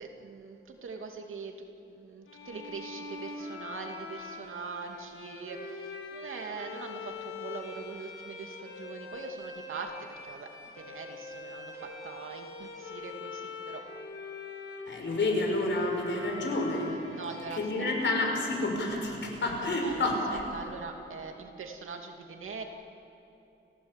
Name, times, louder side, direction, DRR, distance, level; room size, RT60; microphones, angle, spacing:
voice 1, 0.0-10.5 10.7-13.9 17.1-18.1 19.6-22.6, right 4 dB, 75° right, 3 dB, 2.5 m, -42 dB
sound 1, 2.2-19.1, left 3 dB, 90° left, 4.3 m, -43 dB
voice 2, 14.9-16.9 17.6-20.4, left 2 dB, 65° left, 1 dB, 5.3 m, -29 dB
29.5 x 15.5 x 8.2 m, 2.9 s
wide cardioid pair, 130°, 21 cm